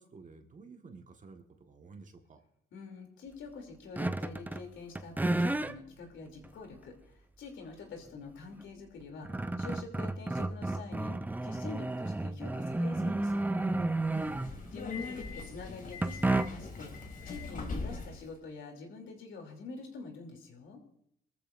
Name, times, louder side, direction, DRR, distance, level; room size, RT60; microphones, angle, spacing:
voice 1, 0.0-2.4 14.1-14.7, right 4 dB, 40° right, 4 dB, 1.6 m, -51 dB
voice 2, 2.7-11.1 11.4-13.4 14.7-16.9 17.2-20.8, left 4 dB, 75° left, 2 dB, 3.1 m, -46 dB
sound 1, 4.0-4.7 5.0-5.7 6.4-6.5 8.6-8.7 9.0-14.8 16.0-16.8, right 2 dB, 10° right, 0.5 m, -32 dB
Subway metro underground, 14.0-18.3, left 4 dB, 45° left, 2.6 m, -41 dB
22.5 x 14.0 x 2.6 m, 0.71 s
cardioid pair, 90°, 20 cm